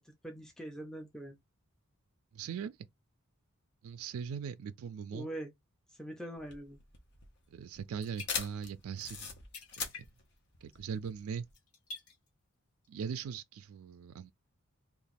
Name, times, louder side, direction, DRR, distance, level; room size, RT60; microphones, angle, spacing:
voice 1, 0.0-1.4 5.1-5.5 6.0-6.8, right 1 dB, 5° left, 0.5 m, -43 dB
voice 2, 2.3-2.8 3.8-5.3 7.5-9.3 9.8-10.1 10.6-11.5 12.9-14.3, right 7 dB, 70° right, 0.3 m, -40 dB
sound 1, 6.4-11.5, left 5 dB, 50° left, 0.9 m, -41 dB
sound 2, 7.4-7.5 7.8-8.8 9.2-9.3 9.5-10.4 10.7-11.0 11.5-12.3 12.8-12.9, left 3 dB, 75° left, 1.2 m, -49 dB
2.9 x 2.4 x 4.1 m
head